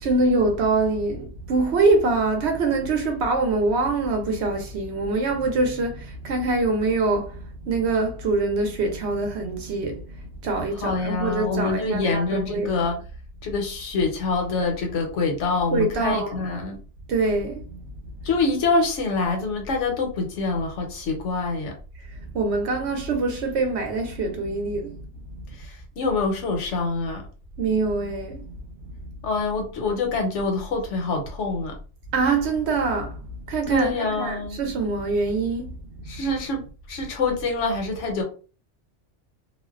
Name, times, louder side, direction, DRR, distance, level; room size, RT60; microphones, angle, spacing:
voice 1, 0.0-7.3 7.7-10.0 10.4-12.7 15.7-16.6 17.1-17.6 22.3-24.9 27.6-28.4 32.1-33.1 33.5-35.7, right 3 dB, 70° right, 0.9 m, -24 dB
voice 2, 10.8-13.0 13.4-16.8 18.2-21.7 26.0-27.2 29.2-31.7 33.7-34.6 36.1-36.6 36.9-38.2, left 3 dB, 80° left, 1.0 m, -25 dB
2.5 x 2.1 x 2.3 m
omnidirectional pair, 1.2 m